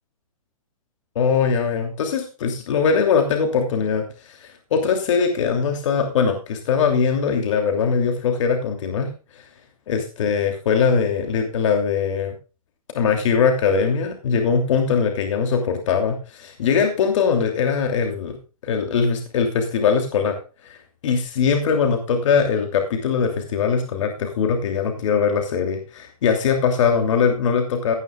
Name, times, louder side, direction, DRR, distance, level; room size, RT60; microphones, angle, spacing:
voice 1, 1.1-9.1 9.9-12.3 12.9-18.3 18.6-20.4 20.6-20.8 21.0-27.9, left 6 dB, 55° left, 4 dB, 2.9 m, -21 dB
17.0 x 10.0 x 2.4 m, 0.32 s
hypercardioid pair, 155°, 19 cm